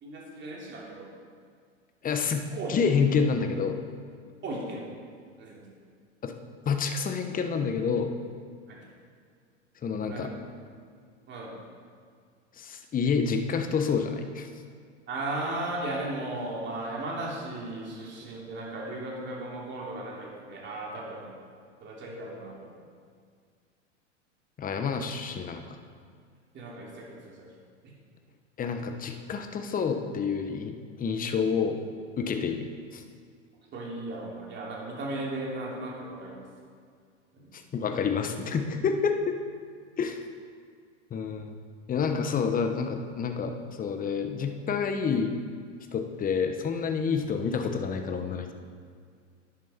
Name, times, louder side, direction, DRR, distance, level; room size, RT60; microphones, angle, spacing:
voice 1, 0.0-1.1 2.5-2.7 4.4-4.9 5.4-5.7 8.7-8.8 10.1-10.3 11.3-11.5 15.1-21.3 21.8-22.8 26.5-27.5 27.8-27.9 32.5-32.6 33.7-36.4 37.3-37.5 38.1-38.2 42.2-42.4, right 2 dB, 30° right, -3 dB, 3.1 m, -36 dB
voice 2, 2.0-3.8 6.2-6.3 6.6-8.1 9.8-10.3 12.6-14.5 24.6-25.8 28.6-31.8 32.2-33.0 37.5-39.4 40.0-40.2 41.1-41.6 41.9-45.4 45.9-48.5, left 5 dB, 20° left, 6 dB, 1.1 m, -28 dB
11.0 x 9.9 x 4.3 m, 2.1 s
hypercardioid pair, 100°, 37 cm